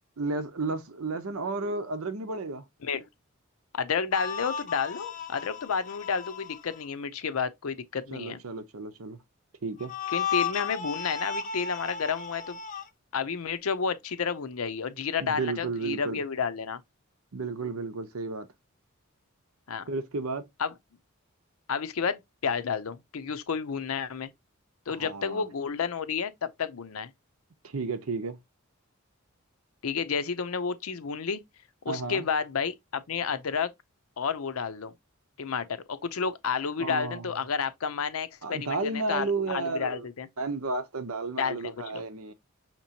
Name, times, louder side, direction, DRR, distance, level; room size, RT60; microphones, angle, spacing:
voice 1, 0.2-2.7 8.1-9.2 9.6-10.0 15.2-16.2 17.3-18.5 19.9-20.5 24.9-25.5 27.6-28.4 31.9-32.3 36.8-37.3 38.4-40.1 40.4-42.3, right 3 dB, 85° right, 0.8 m, -32 dB
voice 2, 3.7-8.4 10.1-12.6 13.1-16.8 19.7-19.8 20.6-20.7 21.7-24.3 24.9-27.1 29.8-31.4 31.8-33.7 34.2-34.9 35.4-40.3 41.4-42.0, left 6 dB, 80° left, 0.6 m, -31 dB
sound 1, 4.1-6.8 9.8-12.8, left 7 dB, 35° left, 0.6 m, -34 dB
5.9 x 2.9 x 2.8 m
head